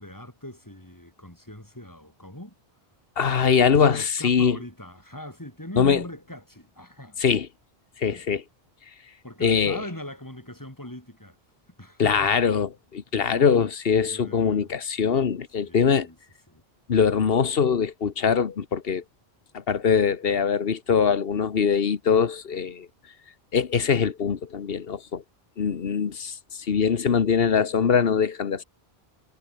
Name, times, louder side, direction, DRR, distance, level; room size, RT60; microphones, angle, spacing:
voice 1, 0.0-2.5 3.8-7.2 8.1-8.3 9.2-11.4 11.8-12.2 13.1-13.7 14.0-14.7 15.6-16.2 16.5-16.6, left 1 dB, 20° left, 4.4 m, -41 dB
voice 2, 3.2-4.6 5.8-6.0 7.2-7.5 8.0-8.4 9.4-9.8 12.0-16.1 16.9-19.0 19.5-22.9 23.5-25.2 25.6-28.6, left 6 dB, 65° left, 1.3 m, -22 dB
omnidirectional pair, 1.1 m